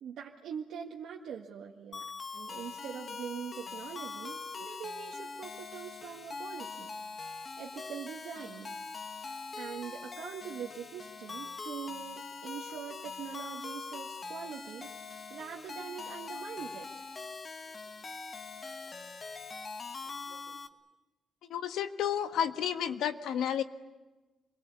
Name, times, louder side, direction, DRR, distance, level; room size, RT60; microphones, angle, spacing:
voice 1, 0.0-2.1 2.3-6.9 7.6-8.8 9.6-17.0, right 8 dB, 65° right, -1 dB, 1.8 m, -43 dB
sound 1, 1.9-20.7, left 4 dB, 25° left, 1.2 m, -43 dB
voice 2, 21.5-23.6, left 9 dB, 75° left, 9 dB, 1.4 m, -31 dB
28.0 x 23.0 x 8.4 m, 1.2 s
cardioid pair, 180°, 0 cm